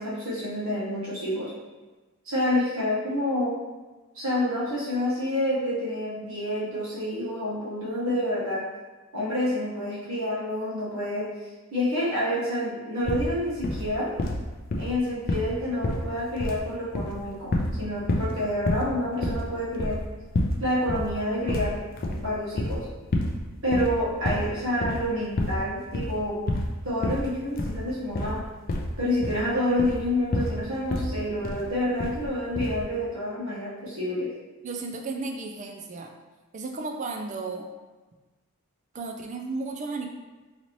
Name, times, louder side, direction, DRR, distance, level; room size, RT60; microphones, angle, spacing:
voice 1, 0.0-1.5 2.2-3.5 4.1-8.6 9.1-11.3 11.7-14.1 14.8-20.0 20.6-21.8 22.1-22.9 23.6-26.4 26.8-28.4 29.0-34.3, left 1 dB, 65° right, -9 dB, 1.3 m, -28 dB
sound 1, 13.1-13.3 13.6-13.9 14.2-15.6 15.8-16.6 16.9-17.8 18.1-18.4 18.7-18.9 19.2-20.6 20.9-21.1 21.5-22.8 23.1-23.4 23.7-24.5 24.8-25.1 25.4-25.7 25.9-26.2 26.5-26.7 27.0-27.3 27.6-27.8 28.1-28.4 28.7-29.4 29.8-30.1 30.3-30.6 30.9-31.2 31.4-31.7 32.0-32.3 32.5-32.8, left 1 dB, 40° left, 0.4 m, -28 dB
voice 2, 34.6-36.1 36.5-37.7 38.9-40.1, right 3 dB, 35° right, 2 dB, 0.3 m, -34 dB
4.0 x 2.8 x 3.0 m, 1.2 s
head